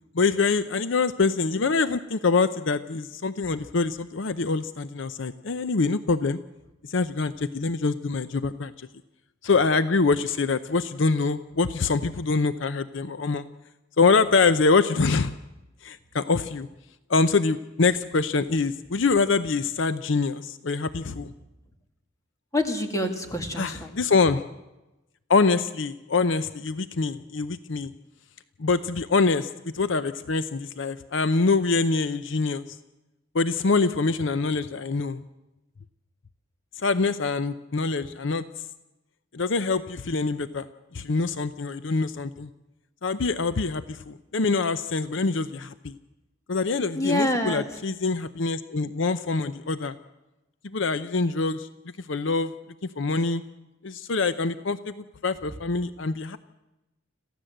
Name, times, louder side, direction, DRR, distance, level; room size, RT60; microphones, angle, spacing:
voice 1, 0.1-6.4 6.9-8.7 9.4-13.4 14.0-15.3 15.8-16.7 17.1-21.3 23.6-24.4 25.3-27.9 28.6-32.6 33.3-35.2 36.8-38.5 39.3-40.7 40.9-42.5 43.0-46.0 46.5-49.9 50.6-51.7 52.0-52.5 52.8-53.4 53.8-56.4, left 4 dB, 65° left, 13 dB, 0.6 m, -25 dB
voice 2, 22.5-23.9 46.9-47.7, left 1 dB, 15° left, 5 dB, 2.1 m, -26 dB
26.5 x 15.5 x 7.8 m, 1.0 s
head